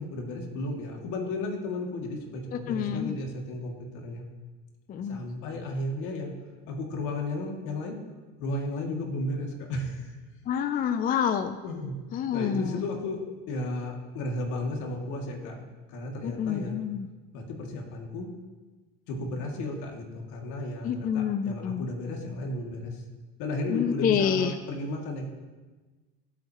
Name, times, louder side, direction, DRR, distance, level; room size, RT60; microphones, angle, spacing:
voice 1, 0.0-4.2 5.1-6.3 6.7-8.0 8.4-10.2 10.7-10.9 11.6-11.9 12.3-13.2 13.5-15.6 15.9-16.7 17.3-18.3 19.1-23.0 23.4-25.3, left 1 dB, 65° left, 1 dB, 2.4 m, -34 dB
voice 2, 2.7-3.2 4.9-5.2 10.5-11.6 12.1-12.8 16.2-17.1 20.8-21.9 23.7-24.5, left 8 dB, 30° left, 10 dB, 0.4 m, -28 dB
19.5 x 8.0 x 3.0 m, 1.3 s
cardioid pair, 125°, 32 cm